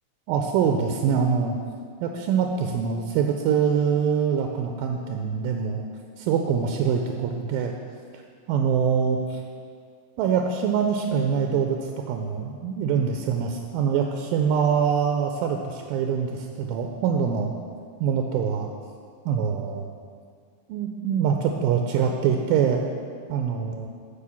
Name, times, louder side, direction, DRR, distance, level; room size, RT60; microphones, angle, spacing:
voice 1, 0.3-1.6 2.0-5.9 6.2-7.7 8.5-9.4 10.2-17.5 18.0-18.7 19.3-19.9 20.7-22.9 23.3-23.9, right 7 dB, 80° right, 3 dB, 2.1 m, -24 dB
8.6 x 5.0 x 7.0 m, 2.1 s
omnidirectional pair, 4.3 m